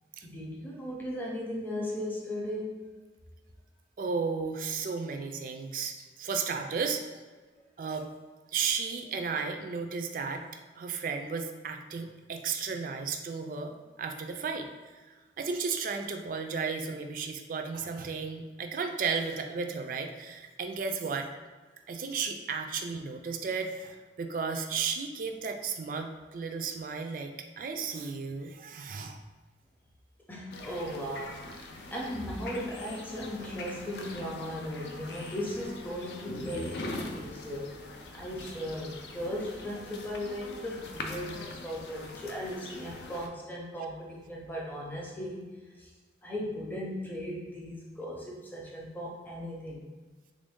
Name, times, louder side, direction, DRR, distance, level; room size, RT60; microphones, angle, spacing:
voice 1, 0.2-2.9 30.3-37.7 38.1-45.5 45.8-45.9 46.2-49.8, equal, 10° left, -3 dB, 0.6 m, -37 dB
voice 2, 4.0-7.0 7.8-8.1 8.5-10.4 10.8-14.7 15.4-21.3 21.9-27.3 27.6-29.2, right 5 dB, 50° right, 5 dB, 0.3 m, -34 dB
sound 1, 30.5-43.3, left 2 dB, 70° left, 0.5 m, -42 dB
3.4 x 2.6 x 3.5 m, 1.4 s
head